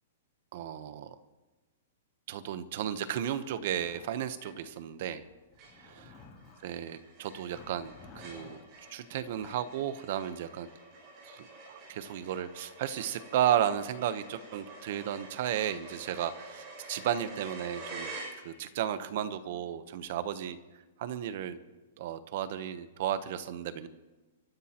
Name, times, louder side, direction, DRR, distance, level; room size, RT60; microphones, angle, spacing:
voice 1, 0.5-1.1 2.3-5.2 6.6-8.6 8.9-10.7 11.2-20.6 21.0-21.6 22.0-23.9, right 10 dB, 45° right, 13 dB, 0.8 m, -34 dB
Zipper (clothing), 3.2-4.6 5.5-6.7 7.5-8.6 9.2-9.6, left 4 dB, 20° left, 2.7 m, -53 dB
sound 1, 4.4-4.9 5.2-5.3 5.6-18.9, right 3 dB, 25° right, 6.5 m, -48 dB
28.0 x 14.0 x 2.9 m, 1.2 s
hypercardioid pair, 170°, 0 cm